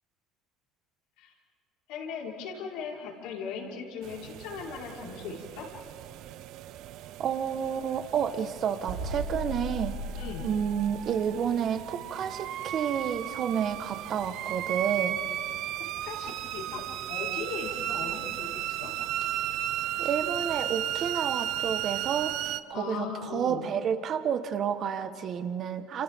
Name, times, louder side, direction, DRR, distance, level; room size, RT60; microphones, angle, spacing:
voice 1, 1.9-5.7 10.2-10.5 16.0-18.9 22.7-23.6, left 5 dB, 75° left, -3 dB, 5.0 m, -38 dB
sound 1, 4.0-22.6, right 12 dB, 65° right, 0.7 m, -35 dB
voice 2, 7.2-9.9 10.4-15.2 20.0-22.3 22.7-26.0, right 8 dB, 50° right, 8 dB, 1.5 m, -30 dB
sound 2, 8.9-11.6, right 1 dB, 85° right, 3.9 m, -37 dB
29.5 x 28.0 x 3.8 m, 2.3 s
supercardioid pair, 100°, 0 cm